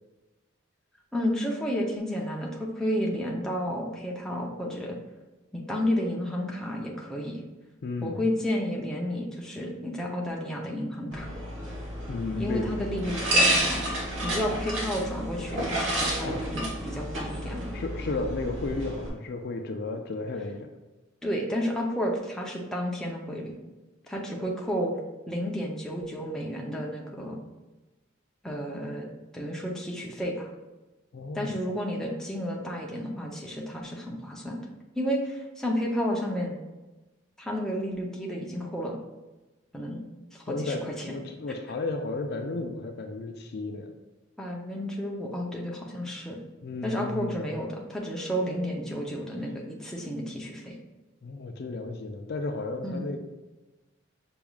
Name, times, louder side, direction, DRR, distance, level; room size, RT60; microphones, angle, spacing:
voice 1, 1.1-5.0 5.5-7.4 8.0-11.3 12.4-13.8 14.2-17.7 21.2-23.5 24.1-24.9 25.3-27.4 28.4-30.5 31.3-34.7 35.0-36.5 37.4-39.0 39.7-40.0 40.5-41.1 44.4-46.4 46.8-50.8 52.8-53.1, equal, 5° left, -2 dB, 0.6 m, -31 dB
voice 2, 7.8-8.2 12.1-12.8 16.2-16.4 17.7-20.7 31.1-31.5 40.5-43.9 46.6-47.4 51.2-53.2, left 3 dB, 55° left, 5 dB, 0.4 m, -33 dB
sound 1, 11.1-19.1, right 1 dB, 70° right, 1.2 m, -30 dB
5.9 x 3.5 x 2.3 m, 1.1 s
head